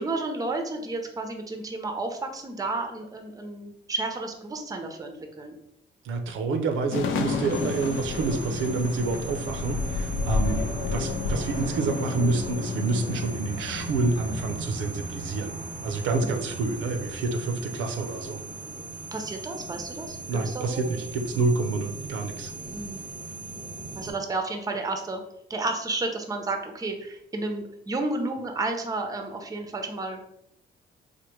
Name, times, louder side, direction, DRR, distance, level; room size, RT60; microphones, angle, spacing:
voice 1, 0.0-5.6 10.4-10.8 16.2-16.5 19.1-20.9 21.3-21.4 22.7-23.1 23.9-25.2 25.5-30.3, right 2 dB, 20° right, 4 dB, 0.5 m, -32 dB
voice 2, 6.0-18.4 20.3-22.5, right 3 dB, 90° right, 5 dB, 0.5 m, -28 dB
sound 1, 6.9-14.5, left 5 dB, 75° left, 0.4 m, -31 dB
sound 2, 7.5-24.1, right 2 dB, 45° left, 0.8 m, -38 dB
3.2 x 2.1 x 3.0 m, 0.78 s
cardioid pair, 90°, 20 cm